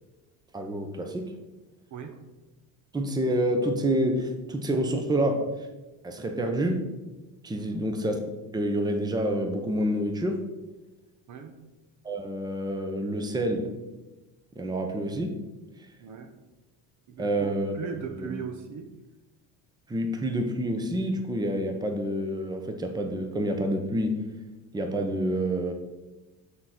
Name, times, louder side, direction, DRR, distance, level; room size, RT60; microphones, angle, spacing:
voice 1, 0.5-1.3 2.9-5.7 6.0-6.9 7.4-8.2 8.5-10.5 12.0-13.7 14.6-15.4 15.8-15.9 17.2-18.3 19.9-24.3 24.7-25.7, right 1 dB, 10° right, 5 dB, 0.8 m, -28 dB
voice 2, 7.5-7.9 11.3-11.6 16.0-16.4 17.1-18.9, right 6 dB, 45° right, 8 dB, 0.9 m, -39 dB
8.6 x 3.8 x 5.9 m, 1.1 s
cardioid pair, 120°, 41 cm